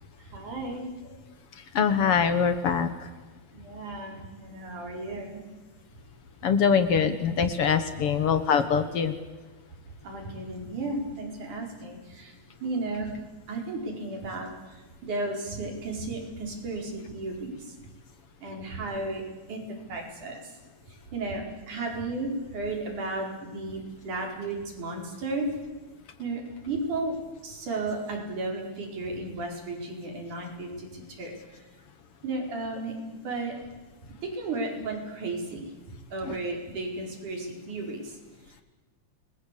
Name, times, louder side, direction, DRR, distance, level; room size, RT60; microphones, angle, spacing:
voice 1, 0.2-1.2 3.5-5.4 10.0-12.3 12.6-13.1 13.5-17.7 18.4-19.2 19.5-19.6 19.9-20.4 21.1-25.5 26.2-27.1 27.4-31.3 32.2-32.9 33.2-33.5 34.2-35.7 36.1-38.1, right 2 dB, 85° right, 1 dB, 6.2 m, -34 dB
voice 2, 1.7-3.1 6.4-9.2 36.2-36.4, left 6 dB, 55° left, 10 dB, 2.0 m, -23 dB
29.0 x 21.0 x 8.4 m, 1.3 s
omnidirectional pair, 3.4 m